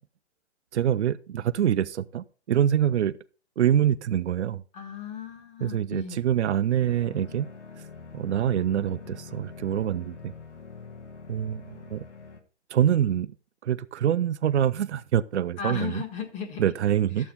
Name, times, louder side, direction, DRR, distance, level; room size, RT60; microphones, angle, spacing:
voice 1, 0.7-3.1 3.6-4.6 5.6-7.5 8.1-10.3 11.3-12.0 12.7-13.3 13.6-16.0 16.6-17.3, right 10 dB, 75° right, 0.6 m, -25 dB
voice 2, 4.7-6.2 15.6-16.7 17.2-17.3, left 6 dB, 20° left, 1.5 m, -36 dB
sound 1, 6.8-12.4, left 5 dB, 85° left, 2.0 m, -44 dB
11.5 x 7.4 x 4.0 m
hypercardioid pair, 140°, 34 cm